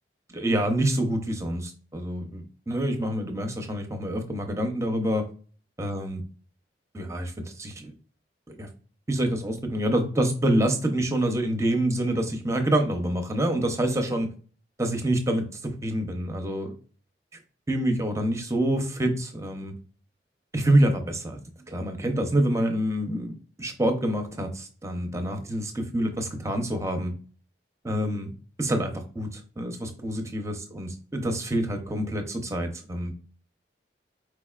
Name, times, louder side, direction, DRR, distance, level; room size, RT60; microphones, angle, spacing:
voice 1, 0.3-5.3 5.8-6.2 6.9-7.9 8.5-8.7 9.1-14.3 14.8-16.7 17.7-19.7 20.5-21.4 21.7-23.3 23.6-27.1 27.8-28.3 28.6-33.1, right 1 dB, 15° right, 5 dB, 0.7 m, -27 dB
4.8 x 4.0 x 2.4 m, 0.40 s
head